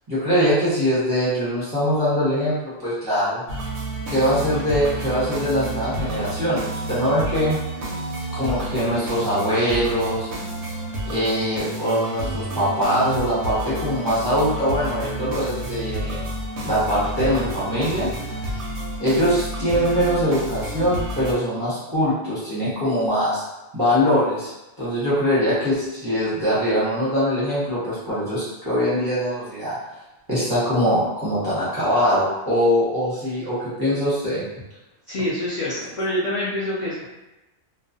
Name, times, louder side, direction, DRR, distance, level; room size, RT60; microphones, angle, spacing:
voice 1, 0.1-3.4 4.1-7.6 8.3-10.3 11.1-16.2 16.6-18.1 19.0-23.4 23.7-24.5 24.8-29.8 30.3-34.4, equal, 20° right, -11 dB, 0.8 m, -22 dB
sound 1, 3.5-21.3, right 1 dB, 65° right, 0.8 m, -30 dB
voice 2, 35.1-37.1, left 1 dB, 55° left, -8 dB, 0.5 m, -26 dB
2.3 x 2.2 x 2.6 m, 0.98 s
omnidirectional pair, 1.4 m